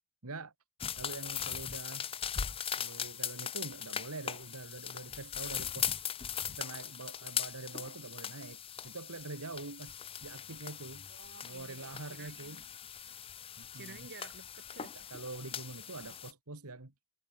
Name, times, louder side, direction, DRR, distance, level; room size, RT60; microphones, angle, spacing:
voice 1, 0.2-0.5 1.0-2.1 2.8-6.1 6.5-10.0 10.2-11.1 11.4-12.6 13.6-14.1 15.0-16.9, right 3 dB, 90° right, 2.1 m, -45 dB
sound 1, 0.8-16.3, left 8 dB, 25° left, 0.5 m, -40 dB
voice 2, 11.1-12.7 13.7-15.1, right 4 dB, 55° right, 4.1 m, -52 dB
head